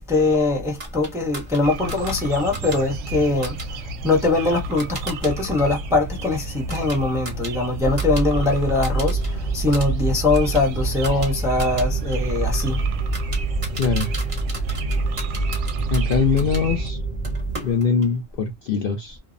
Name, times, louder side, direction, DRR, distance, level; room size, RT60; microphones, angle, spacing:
voice 1, 0.0-3.8 4.0-12.8, left 3 dB, 5° right, 0.5 m, -22 dB
sound 1, 0.8-5.3 5.6-8.3 8.6-9.3 9.6-16.7 17.2-18.2, right 2 dB, 30° right, 0.9 m, -38 dB
sound 2, 1.6-16.9, right 2 dB, 70° right, 0.9 m, -33 dB
sound 3, 7.8-17.6, right 3 dB, 40° left, 0.9 m, -26 dB
voice 2, 13.7-14.1 15.9-17.0 17.6-19.2, left 5 dB, 65° left, 0.6 m, -22 dB
2.5 x 2.0 x 2.4 m
omnidirectional pair, 1.3 m